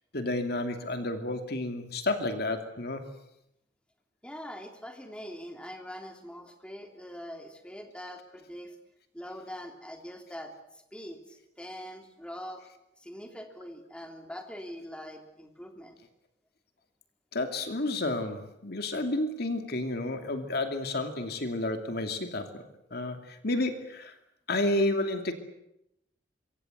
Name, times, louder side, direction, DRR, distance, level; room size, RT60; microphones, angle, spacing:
voice 1, 0.1-3.0 17.3-22.6 22.9-24.2 24.5-25.3, left 2 dB, 60° left, 6 dB, 2.7 m, -31 dB
voice 2, 4.2-8.8 9.1-12.7 13.0-16.0, equal, 5° left, 4 dB, 3.2 m, -43 dB
26.0 x 24.0 x 8.1 m, 0.82 s
head